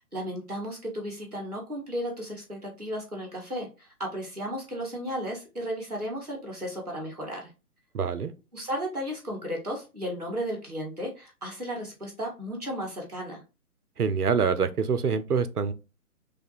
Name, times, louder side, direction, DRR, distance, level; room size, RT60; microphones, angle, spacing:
voice 1, 0.0-7.5 8.5-13.4, equal, ahead, 0.5 m, -34 dB
voice 2, 7.9-8.3 14.0-15.7, right 6 dB, 80° right, 0.6 m, -25 dB
3.2 x 2.4 x 4.1 m
figure-of-eight pair, 130°, 45 cm